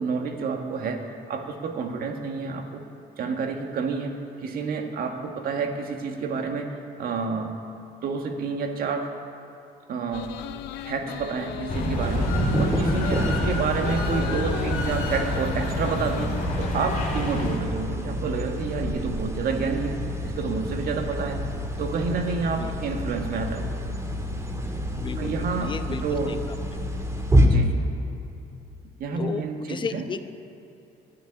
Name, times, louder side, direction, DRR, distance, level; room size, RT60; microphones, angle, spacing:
voice 1, 0.0-2.8 3.2-4.1 4.4-7.5 8.0-9.1 9.9-10.3 10.8-20.0 20.2-21.4 21.8-23.8 25.2-26.3 27.4-27.8 29.0-30.0, right 5 dB, 60° right, 4 dB, 1.7 m, -29 dB
sound 1, 10.1-16.7, left 12 dB, 80° left, 0.6 m, -37 dB
sound 2, 11.7-17.6, left 1 dB, 45° left, 2.7 m, -29 dB
sound 3, 12.0-27.5, equal, 15° right, 1.7 m, -28 dB
voice 2, 25.0-26.8 29.2-30.3, left 5 dB, 30° left, 10 dB, 0.8 m, -35 dB
12.5 x 9.7 x 9.9 m, 2.8 s
cardioid pair, 110°, 17 cm